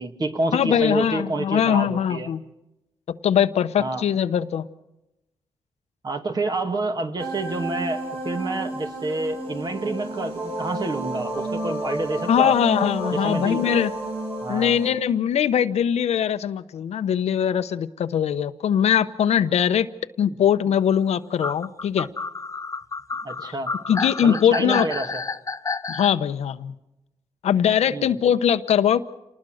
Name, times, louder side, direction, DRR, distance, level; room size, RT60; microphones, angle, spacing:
voice 1, 0.0-2.3 3.8-4.0 6.0-12.5 13.1-13.6 14.4-14.8 20.3-20.4 23.2-23.7 24.2-25.2 27.9-28.2, right 2 dB, 40° right, 5 dB, 2.4 m, -28 dB
voice 2, 0.5-2.4 3.1-4.7 12.3-13.9 14.5-19.9 20.2-22.1 23.9-24.9 25.9-26.7 27.4-29.0, left 9 dB, 85° left, 11 dB, 0.9 m, -21 dB
sound 1, 7.2-14.9, right 1 dB, 60° right, 6.8 m, -31 dB
sound 2, 21.4-26.1, left 4 dB, 30° left, 0.7 m, -30 dB
28.0 x 20.0 x 6.5 m, 0.94 s
wide cardioid pair, 105°, 11 cm